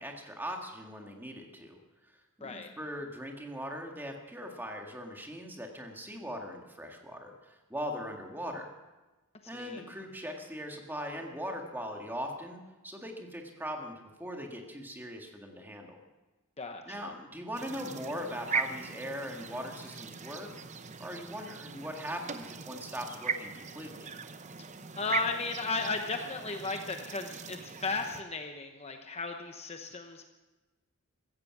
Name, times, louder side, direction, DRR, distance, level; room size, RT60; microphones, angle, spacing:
voice 1, 0.0-1.8 2.0-2.1 2.4-8.7 9.5-16.0 16.9-20.5 21.0-24.1, equal, 10° right, 2 dB, 2.0 m, -40 dB
voice 2, 9.5-9.8 16.6-17.0 25.0-30.3, left 3 dB, 30° left, 5 dB, 0.9 m, -35 dB
sound 1, 17.5-28.2, right 5 dB, 35° right, 0.8 m, -39 dB
15.5 x 15.5 x 6.1 m, 1.2 s
head